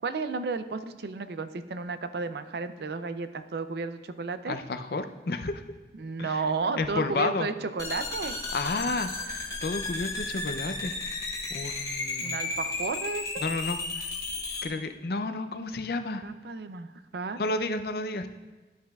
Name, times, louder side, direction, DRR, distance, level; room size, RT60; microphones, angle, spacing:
voice 1, 0.0-4.6 5.9-8.3 12.2-13.4 16.2-17.4, right 4 dB, 70° right, 10 dB, 0.5 m, -33 dB
voice 2, 4.5-5.6 6.2-6.4 6.8-7.5 8.5-9.3 9.6-11.2 11.5-12.4 13.4-14.1 14.6-16.2 17.4-18.3, left 3 dB, 60° left, 8 dB, 0.5 m, -31 dB
sound 1, 7.8-14.7, left 3 dB, 20° left, 0.9 m, -34 dB
12.0 x 9.3 x 2.4 m, 1.2 s
head